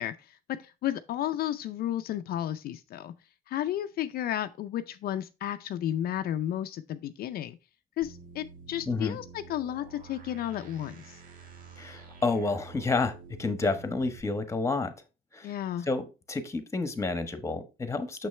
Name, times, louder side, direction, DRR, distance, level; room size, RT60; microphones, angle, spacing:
voice 1, 0.0-3.1 3.5-7.6 8.0-11.2 15.4-15.9, left 11 dB, 60° left, 0.5 m, -33 dB
sound 1, 8.0-14.2, right 5 dB, 55° right, 1.6 m, -49 dB
voice 2, 8.9-9.2 11.8-14.9 15.3-15.6 15.9-18.3, left 3 dB, 15° left, 1.2 m, -30 dB
6.6 x 6.2 x 3.2 m
cardioid pair, 110°, 17 cm